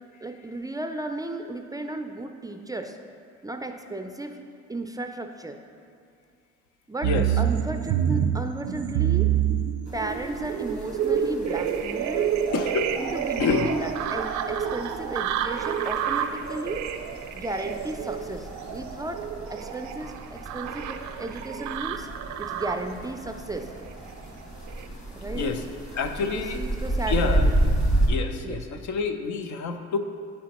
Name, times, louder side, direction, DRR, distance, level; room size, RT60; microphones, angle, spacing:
voice 1, 0.2-3.0 3.4-4.4 4.7-5.6 6.9-7.1 7.4-9.3 9.9-12.4 13.0-16.8 17.3-19.2 19.5-22.1 22.4-23.7 25.1-25.5 26.2-27.7 28.4-28.6, right 2 dB, 15° right, 5 dB, 0.3 m, -34 dB
sound 1, 7.0-22.9 23.6-24.2 24.7-24.8, right 9 dB, 80° right, 0.4 m, -28 dB
sound 2, 9.8-28.1, right 1 dB, 25° left, 1.5 m, -32 dB
voice 2, 12.5-13.0 13.4-13.7 25.3-25.6 25.9-26.6 27.1-27.4 28.1-30.0, left 5 dB, 75° left, 7 dB, 0.6 m, -28 dB
10.0 x 4.3 x 2.9 m, 2.3 s
cardioid pair, 90°, 29 cm